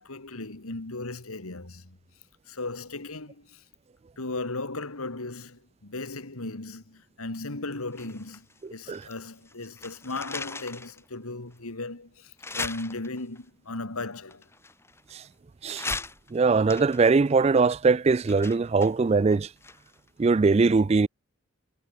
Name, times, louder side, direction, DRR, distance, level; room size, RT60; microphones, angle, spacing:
voice 1, 0.0-2.0 2.5-3.6 4.2-8.5 8.7-14.5, left 2 dB, 85° left, 2.2 m, -36 dB
sound 1, 7.9-9.2 9.5-11.0 11.5-11.6 12.4-13.4 14.3-15.3 15.7-20.1 20.4-20.5, left 3 dB, 10° left, 0.9 m, -38 dB
voice 2, 16.3-19.5 20.2-21.1, right 4 dB, 30° right, 0.3 m, -21 dB
head